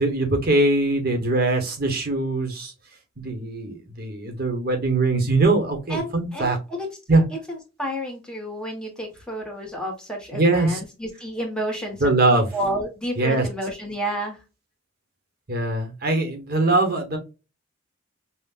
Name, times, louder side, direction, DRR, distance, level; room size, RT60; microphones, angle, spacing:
voice 1, 0.0-2.7 3.2-6.6 7.1-7.2 10.3-10.8 12.0-12.5 13.2-13.5 15.5-17.2, right 2 dB, 50° right, 4 dB, 1.2 m, -22 dB
voice 2, 5.9-6.9 7.8-12.0 12.5-14.4, equal, 5° left, -1 dB, 1.2 m, -30 dB
5.7 x 2.4 x 2.4 m, 0.28 s
head